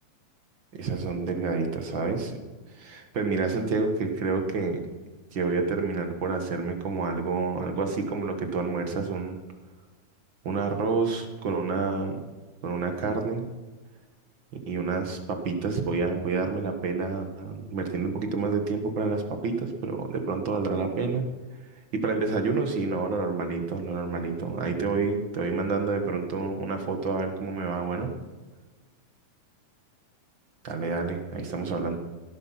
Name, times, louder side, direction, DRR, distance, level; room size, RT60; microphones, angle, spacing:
voice 1, 0.7-2.4 2.7-4.8 5.3-9.4 10.4-12.3 12.6-13.5 14.7-21.2 21.9-28.1 30.6-32.0, right 4 dB, 45° right, 5 dB, 1.8 m, -28 dB
16.5 x 12.0 x 5.7 m, 1.3 s
omnidirectional pair, 3.6 m